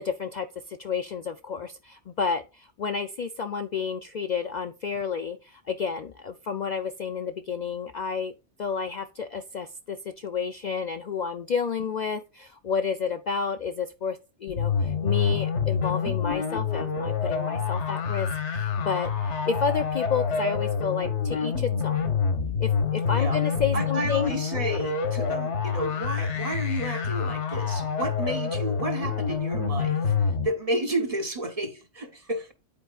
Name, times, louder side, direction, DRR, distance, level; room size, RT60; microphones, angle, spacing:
voice 1, 0.0-8.3 8.6-22.1 22.6-24.3, left 6 dB, 55° left, 0.5 m, -31 dB
sound 1, 14.5-30.5, left 6 dB, 80° left, 1.4 m, -27 dB
voice 2, 23.7-32.5, right 1 dB, 35° right, 0.9 m, -31 dB
10.5 x 4.5 x 2.3 m
omnidirectional pair, 1.2 m